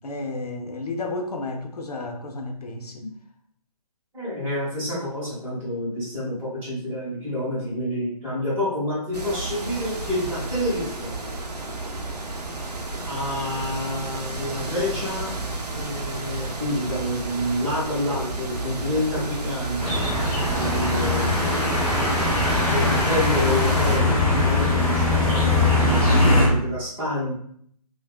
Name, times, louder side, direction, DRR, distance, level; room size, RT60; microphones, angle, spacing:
voice 1, 0.0-3.0, left 2 dB, 75° left, 4 dB, 0.6 m, -32 dB
voice 2, 4.1-11.1 13.0-15.3 15.7-20.0 20.5-21.3 22.6-27.3, left 1 dB, 10° right, -11 dB, 1.3 m, -28 dB
sound 1, 9.1-24.0, right 2 dB, 90° right, 0.6 m, -31 dB
sound 2, 19.8-26.5, left 2 dB, 5° left, 0.5 m, -21 dB
3.3 x 2.4 x 2.3 m, 0.65 s
figure-of-eight pair, 140°, 20 cm